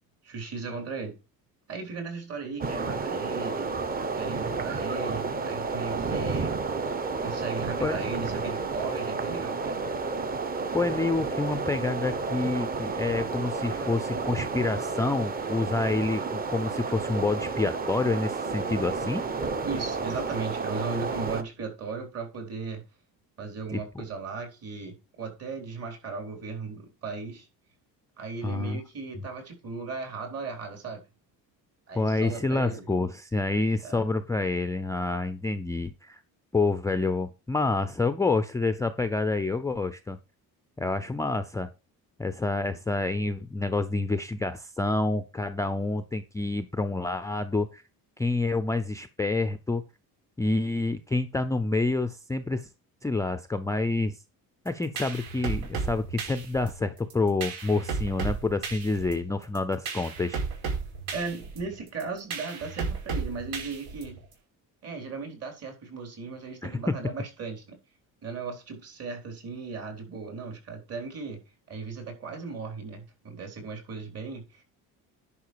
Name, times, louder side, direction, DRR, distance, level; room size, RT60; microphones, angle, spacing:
voice 1, 0.2-1.2 1.7-3.7 4.1-6.6 7.2-9.8 19.6-22.8 23.4-27.5 28.2-31.0 31.9-32.9 33.8-34.0 61.1-64.2 64.8-67.8 68.2-71.4 71.7-74.6, right 4 dB, 40° right, 4.1 m, -37 dB
sound 1, 2.6-21.4, right 4 dB, 25° right, 1.0 m, -31 dB
voice 2, 10.7-19.3 23.7-24.0 28.4-28.8 31.9-36.2 36.5-40.2 40.8-41.7 42.2-47.8 48.2-49.8 50.4-52.7 53.0-54.2 54.7-60.4 66.6-67.1, left 3 dB, 10° left, 0.5 m, -28 dB
sound 2, 54.7-64.3, right 4 dB, 75° right, 5.4 m, -34 dB
10.5 x 5.7 x 4.7 m
cardioid pair, 160°, 36 cm